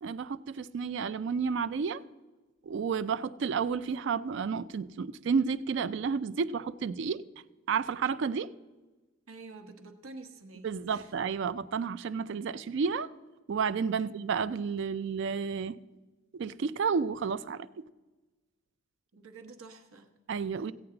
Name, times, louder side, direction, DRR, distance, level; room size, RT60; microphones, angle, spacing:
voice 1, 0.0-2.0 2.7-7.2 7.7-8.5 10.6-13.1 13.5-15.8 16.3-17.7 20.3-20.7, right 6 dB, 55° right, 0.3 m, -31 dB
voice 2, 9.3-11.2 14.0-14.1 19.1-20.1 20.6-20.7, right 3 dB, 75° right, 1.1 m, -49 dB
15.0 x 8.6 x 3.8 m
head